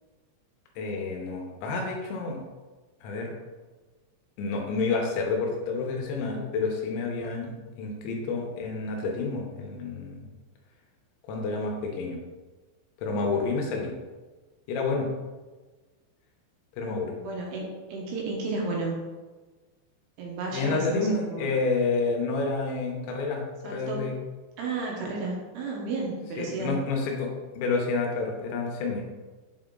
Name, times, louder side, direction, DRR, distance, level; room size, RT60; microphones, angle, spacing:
voice 1, 0.8-2.4 3.0-3.3 4.4-10.3 11.3-12.2 13.0-13.9 14.7-15.1 16.8-17.1 20.5-24.1 26.4-29.0, left 4 dB, 80° left, 0 dB, 3.2 m, -29 dB
voice 2, 16.8-19.0 20.2-21.5 23.6-24.1 24.6-26.8, right 3 dB, 75° right, -2 dB, 2.8 m, -33 dB
8.1 x 4.2 x 3.8 m, 1.3 s
omnidirectional pair, 5.5 m